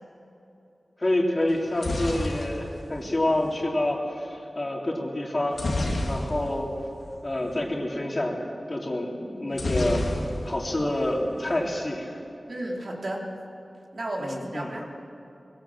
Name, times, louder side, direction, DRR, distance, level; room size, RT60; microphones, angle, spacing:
voice 1, 1.0-6.7 7.2-8.4 8.7-12.2 14.2-14.8, left 1 dB, 40° left, -1 dB, 3.6 m, -28 dB
sound 1, 1.5-3.6 5.5-6.7 7.0-7.1 7.4-7.6 9.5-10.7 11.0-11.6, left 1 dB, 75° left, 3.0 m, -30 dB
voice 2, 12.5-13.3 13.9-14.8, right 1 dB, 60° right, -1 dB, 3.2 m, -33 dB
21.5 x 18.0 x 7.6 m, 2.9 s
wide cardioid pair, 65°, 0 cm